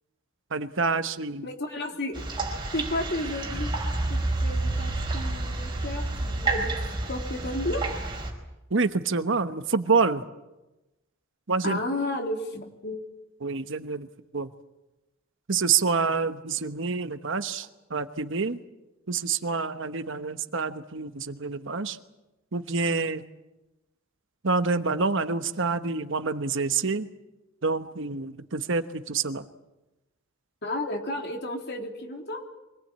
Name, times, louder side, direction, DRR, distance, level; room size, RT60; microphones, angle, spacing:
voice 1, 0.5-1.5 8.7-10.2 11.5-11.8 13.4-14.1 14.3-14.5 15.5-18.6 19.1-22.0 22.5-23.2 24.4-27.1 27.6-29.4, right 4 dB, 65° right, 10 dB, 1.1 m, -27 dB
voice 2, 1.4-2.2 2.7-3.7 4.1-6.7 7.1-7.8 11.6-13.0 30.6-32.4, left 1 dB, 55° left, 2 dB, 3.4 m, -32 dB
sound 1, 2.1-8.3, right 2 dB, 25° right, 5.0 m, -29 dB
25.0 x 19.0 x 8.8 m, 1.0 s
head